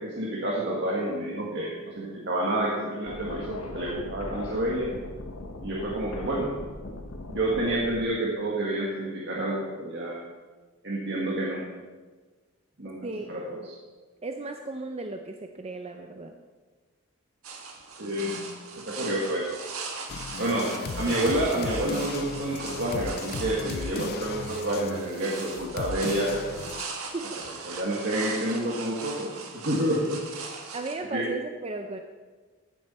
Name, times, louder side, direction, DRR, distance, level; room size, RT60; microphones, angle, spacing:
voice 1, 0.0-4.9 5.6-6.5 7.3-10.2 10.8-11.6 12.8-13.7 18.0-19.5 20.4-20.7 21.0-26.7 27.7-30.2 31.1-31.3, right 1 dB, 55° right, -3 dB, 1.7 m, -29 dB
sound 1, 3.0-8.0, left 2 dB, 85° left, 1.1 m, -39 dB
voice 2, 13.0-13.7 14.2-16.3 20.7-20.8 27.1-27.4 30.7-32.0, right 3 dB, 30° right, 5 dB, 0.6 m, -35 dB
sound 2, 17.4-31.0, right 4 dB, 90° right, 1.6 m, -39 dB
sound 3, 20.1-26.8, left 5 dB, 45° left, 0.4 m, -37 dB
14.0 x 9.2 x 4.3 m, 1.4 s
head